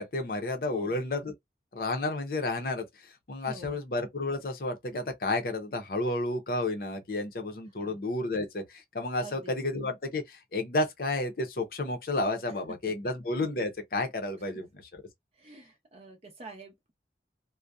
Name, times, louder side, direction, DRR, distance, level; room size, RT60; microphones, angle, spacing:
voice 1, 0.0-1.3 1.7-14.7, left 2 dB, 55° left, 0.6 m, -31 dB
voice 2, 3.4-3.8 7.8-8.0 9.2-9.5 15.3-16.9, right 2 dB, 35° right, 0.6 m, -47 dB
2.6 x 2.1 x 2.3 m
head